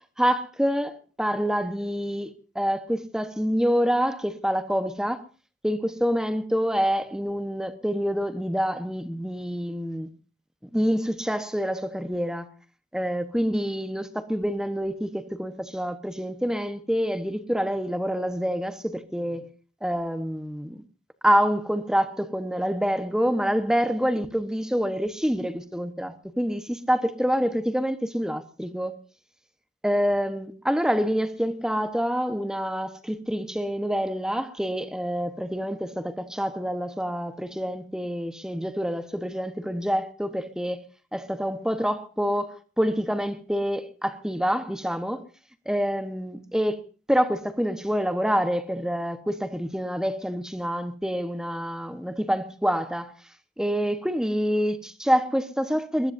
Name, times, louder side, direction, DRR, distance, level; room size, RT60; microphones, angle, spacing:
voice 1, 0.2-5.2 5.6-10.1 10.7-12.5 12.9-19.5 19.8-20.8 21.2-29.0 29.8-40.8 41.1-45.2 45.6-46.8 47.1-53.1 53.6-56.1, equal, 5° right, 1.1 m, -27 dB
22.0 x 20.5 x 2.7 m
head